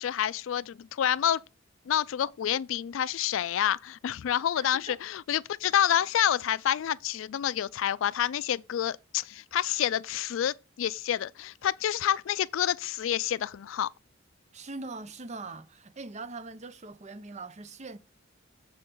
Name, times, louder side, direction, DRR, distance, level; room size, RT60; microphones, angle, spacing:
voice 1, 0.0-1.4 1.9-13.9, left 10 dB, 75° left, 0.3 m, -28 dB
voice 2, 4.6-5.0 14.5-18.0, right 3 dB, 35° right, 0.7 m, -42 dB
7.1 x 6.7 x 3.8 m
head